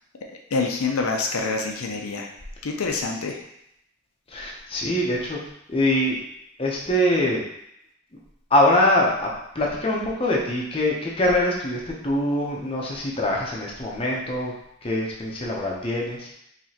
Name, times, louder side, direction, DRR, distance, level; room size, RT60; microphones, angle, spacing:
voice 1, 0.3-2.3 2.6-3.4, left 4 dB, 85° left, 2 dB, 0.6 m, -26 dB
voice 2, 4.3-5.4 5.7-6.2 6.6-7.4 8.5-9.3 9.5-14.5 14.8-16.3, left 1 dB, 25° left, -2 dB, 0.6 m, -23 dB
4.8 x 3.3 x 2.8 m, 0.77 s
head